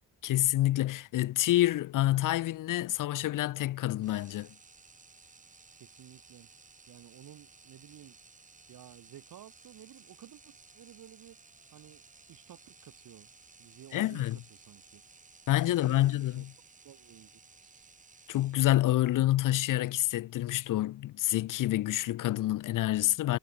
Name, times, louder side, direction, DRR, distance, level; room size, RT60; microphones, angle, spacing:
voice 1, 0.2-4.5 13.9-14.4 15.5-16.5 18.3-23.4, left 15 dB, 60° left, 0.7 m, -28 dB
sound 1, 4.0-19.1, right 4 dB, 20° right, 2.6 m, -57 dB
voice 2, 5.8-6.5 6.9-8.2 8.7-11.4 11.7-12.0 12.3-13.3 13.6-14.2 14.5-15.0 15.7-16.4 16.8-17.9, right 12 dB, 65° right, 3.3 m, -53 dB
cardioid pair, 120°, 35 cm